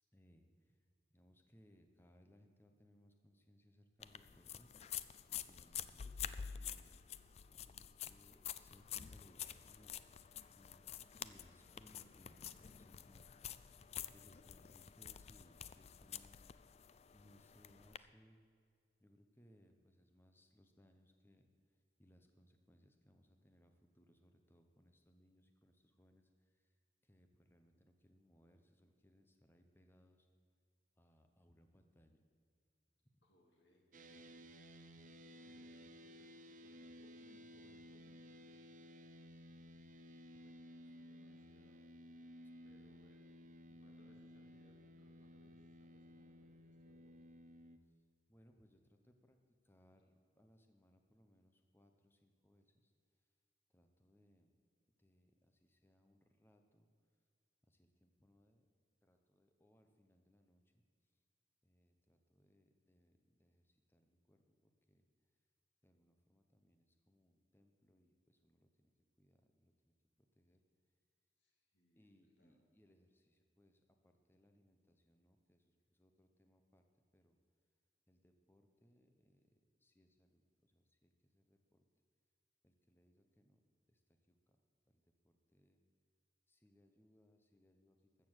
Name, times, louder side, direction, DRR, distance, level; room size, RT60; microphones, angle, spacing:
voice 1, 0.1-0.8 1.1-7.0 7.5-16.8 17.1-18.4 19.0-21.5 22.0-26.7 27.0-30.3 31.0-32.2 40.3-40.5 40.8-40.9 42.4-42.5 48.3-52.9 53.7-54.5 55.0-56.9 57.6-58.7 59.0-60.7 61.6-65.0 65.8-68.9 69.2-70.6 72.0-76.8 77.1-77.4 78.1-79.5 79.8-81.8 82.6-83.6 83.9-84.0 84.3-84.6 84.9-85.8 86.5-88.0, equal, 10° left, 5 dB, 0.8 m, -69 dB
sound 1, 4.0-18.0, left 9 dB, 35° left, 0.3 m, -49 dB
voice 2, 14.6-15.0 33.2-38.9 40.8-41.8 42.6-43.3 43.7-47.2 71.4-72.6, left 1 dB, 75° left, 0 dB, 2.5 m, -71 dB
sound 2, 33.9-47.8, equal, 45° right, 0.7 m, -57 dB
14.0 x 6.9 x 7.8 m, 2.1 s
head